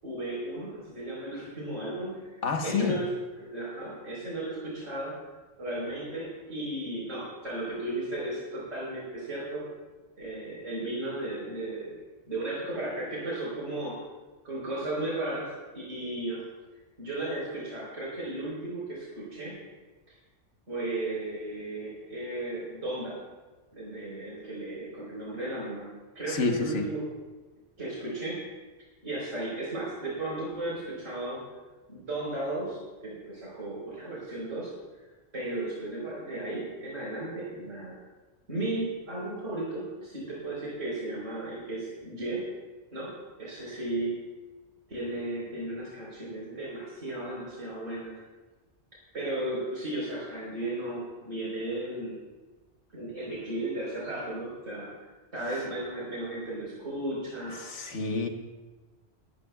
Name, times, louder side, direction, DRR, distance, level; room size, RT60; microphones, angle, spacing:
voice 1, 0.0-3.1 3.4-5.2 5.6-9.6 10.2-11.9 12.3-14.0 14.4-16.4 17.0-19.5 20.1-20.2 20.7-23.2 23.7-25.9 26.1-27.0 27.8-28.4 29.0-31.4 31.9-34.7 35.3-38.0 38.5-42.4 42.9-43.1 43.4-44.1 44.9-48.1 49.1-52.2 52.9-57.6, right 2 dB, 90° right, -6 dB, 4.5 m, -35 dB
voice 2, 2.4-3.0 26.3-26.9 57.5-58.3, left 4 dB, 75° left, 4 dB, 1.5 m, -29 dB
20.5 x 13.0 x 2.3 m, 1.2 s
omnidirectional pair, 1.2 m